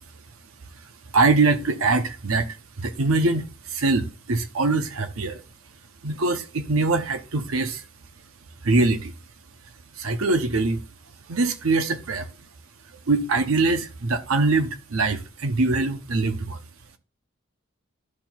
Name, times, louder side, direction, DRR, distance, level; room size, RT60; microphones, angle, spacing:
voice 1, 1.1-5.4 6.0-7.8 8.6-9.1 10.0-10.8 11.3-12.3 13.1-16.6, right 3 dB, 80° right, 0.8 m, -23 dB
11.0 x 4.4 x 2.3 m
head